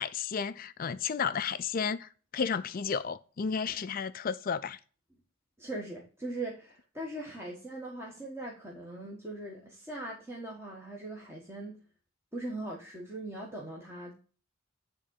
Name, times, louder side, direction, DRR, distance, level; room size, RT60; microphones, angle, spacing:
voice 1, 0.0-4.8, left 6 dB, 40° left, 0.4 m, -32 dB
voice 2, 5.6-11.8 12.3-14.2, right 2 dB, 10° right, 1.4 m, -40 dB
9.7 x 3.7 x 7.0 m
head